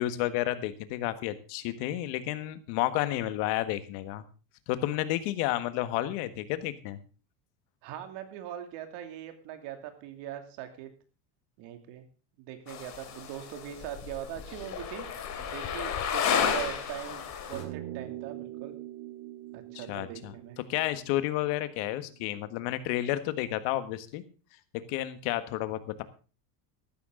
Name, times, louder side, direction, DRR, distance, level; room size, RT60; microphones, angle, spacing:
voice 1, 0.0-4.2 4.7-7.0 19.7-20.3 20.7-24.2 24.9-26.0, left 14 dB, 60° left, 11 dB, 1.7 m, -31 dB
voice 2, 7.8-10.9 11.6-12.1 12.4-15.1 15.4-18.7 19.5-20.6, right 11 dB, 55° right, 6 dB, 2.8 m, -41 dB
sound 1, 12.7-17.6, left 7 dB, 35° left, 3.2 m, -32 dB
sound 2, 17.5-22.2, right 14 dB, 75° right, 2.1 m, -43 dB
14.5 x 12.5 x 3.9 m, 0.35 s
supercardioid pair, 135°, 48 cm